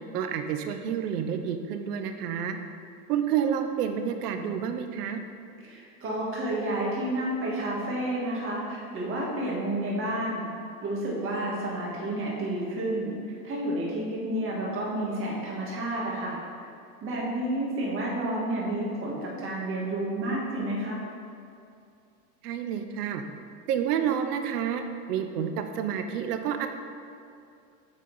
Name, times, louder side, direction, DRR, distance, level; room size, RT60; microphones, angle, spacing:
voice 1, 0.1-2.6 3.1-5.2 22.4-23.2 23.7-24.8 25.1-26.7, right 8 dB, 75° right, 7 dB, 0.9 m, -29 dB
voice 2, 5.6-10.4 10.8-16.4 17.0-21.0, right 1 dB, 25° right, -4 dB, 1.7 m, -30 dB
8.2 x 4.3 x 5.5 m, 2.5 s
supercardioid pair, 140°, 47 cm